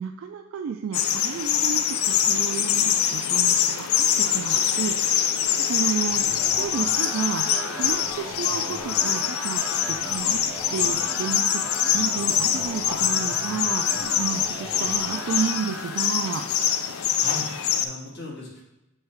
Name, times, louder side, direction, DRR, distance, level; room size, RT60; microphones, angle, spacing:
voice 1, 0.0-6.2 6.5-9.6 9.9-10.4 10.7-16.5, right 6 dB, 70° right, 5 dB, 0.3 m, -32 dB
sound 1, 0.9-17.9, left 9 dB, 90° left, 0.5 m, -24 dB
sound 2, 6.1-16.1, left 1 dB, 5° right, 0.4 m, -37 dB
voice 2, 13.1-13.6 17.2-18.6, left 2 dB, 50° left, -2 dB, 1.4 m, -39 dB
5.6 x 3.2 x 5.7 m, 0.92 s
head